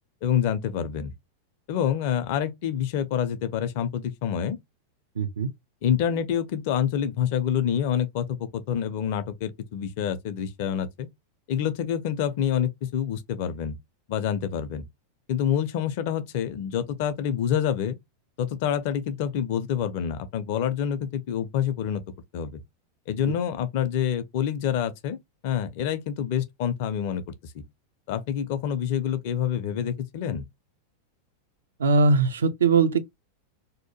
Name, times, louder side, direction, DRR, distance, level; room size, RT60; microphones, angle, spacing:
voice 1, 0.2-1.1 1.7-4.6 5.8-11.1 11.5-13.8 14.1-14.8 15.3-18.0 18.4-22.0 22.3-22.6 23.1-27.6 28.1-30.4, left 9 dB, 50° left, 0.4 m, -27 dB
voice 2, 5.2-5.5 23.2-23.3 31.8-33.0, right 4 dB, 65° right, 0.3 m, -21 dB
2.7 x 2.1 x 2.8 m
figure-of-eight pair, 90°, 0 cm